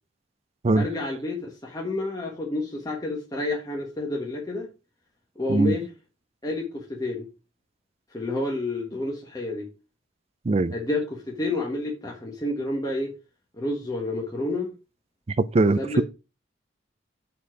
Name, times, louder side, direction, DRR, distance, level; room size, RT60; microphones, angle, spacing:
voice 1, 0.7-4.7 5.4-5.9 6.4-7.3 8.1-9.7 10.7-13.1 13.6-14.7 15.8-16.0, left 2 dB, 20° left, 1.4 m, -29 dB
voice 2, 15.4-16.0, right 2 dB, 30° right, 0.4 m, -21 dB
7.3 x 4.3 x 4.7 m
head